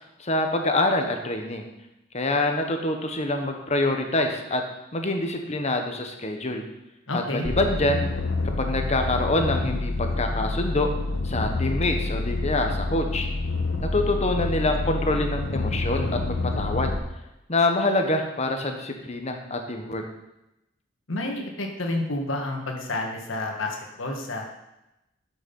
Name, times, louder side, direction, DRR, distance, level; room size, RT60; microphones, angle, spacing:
voice 1, 0.2-1.7 2.1-4.6 4.9-6.6 7.1-8.0 8.6-10.9 11.2-13.3 13.8-16.9 17.5-20.0, left 2 dB, 35° left, 4 dB, 1.3 m, -25 dB
voice 2, 7.1-7.4 21.1-24.5, left 2 dB, 85° left, 1 dB, 1.8 m, -30 dB
sound 1, 7.4-17.0, left 2 dB, 65° left, 1.2 m, -28 dB
12.5 x 6.6 x 5.5 m, 0.92 s
head